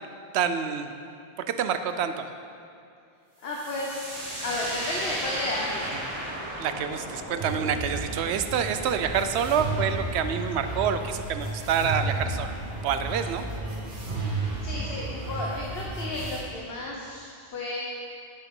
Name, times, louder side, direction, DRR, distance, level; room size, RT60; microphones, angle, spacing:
voice 1, 0.3-0.9 1.4-2.2 6.6-12.5 12.8-13.5, right 7 dB, 85° right, 9 dB, 0.9 m, -27 dB
voice 2, 3.4-4.1 4.4-6.0 14.6-17.8, left 1 dB, 65° left, -3 dB, 1.1 m, -33 dB
sound 1, 3.4-11.0, equal, 35° right, 1.6 m, -37 dB
sound 2, 7.4-16.4, right 2 dB, 50° right, 1.3 m, -33 dB
9.8 x 7.8 x 3.7 m, 2.5 s
omnidirectional pair, 1.1 m